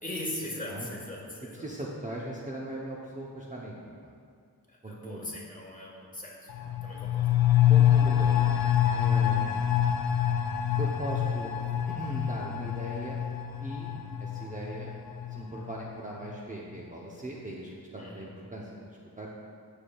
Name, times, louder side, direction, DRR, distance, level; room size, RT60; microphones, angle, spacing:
voice 1, 0.0-1.7 4.7-6.5 6.8-7.3 18.0-18.2, left 1 dB, 20° left, -4 dB, 1.5 m, -39 dB
voice 2, 1.5-3.7 4.0-4.1 4.8-5.3 6.6-6.7 7.7-8.5 8.9-9.6 10.8-11.5 11.9-13.2 13.6-13.9 14.2-14.9 15.3-19.3, right 1 dB, 20° right, -4 dB, 0.7 m, -39 dB
sound 1, 6.5-15.9 16.2-16.3, left 10 dB, 70° left, 0.5 m, -26 dB
9.4 x 6.7 x 2.3 m, 2.2 s
wide cardioid pair, 75°, 38 cm